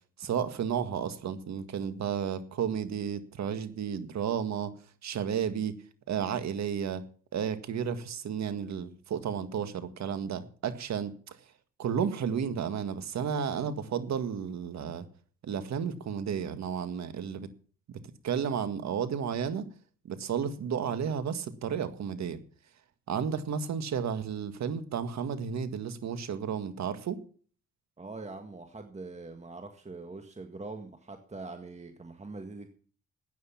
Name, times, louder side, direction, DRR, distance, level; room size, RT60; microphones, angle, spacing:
voice 1, 0.2-4.7 5.0-5.8 6.1-7.0 7.3-11.4 11.8-15.1 15.4-17.5 18.2-19.7 20.1-22.4 23.1-27.2, right 7 dB, 65° right, 11 dB, 1.9 m, -32 dB
voice 2, 28.0-32.7, right 3 dB, 20° right, 6 dB, 1.9 m, -43 dB
13.5 x 9.5 x 5.8 m, 0.43 s
cardioid pair, 90°, 30 cm